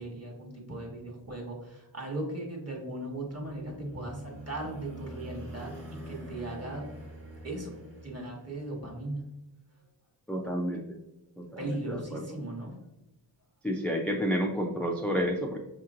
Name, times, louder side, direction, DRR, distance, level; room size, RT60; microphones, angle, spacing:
voice 1, 0.0-6.9 7.4-9.2 11.6-12.8, right 1 dB, 35° right, -1 dB, 1.2 m, -38 dB
sound 1, 3.1-8.9, right 1 dB, 80° right, 1.2 m, -45 dB
voice 2, 10.3-11.0 11.4-12.3 13.6-15.6, equal, 5° left, 0 dB, 0.3 m, -30 dB
5.1 x 2.9 x 2.4 m, 0.98 s
wide cardioid pair, 65°, 44 cm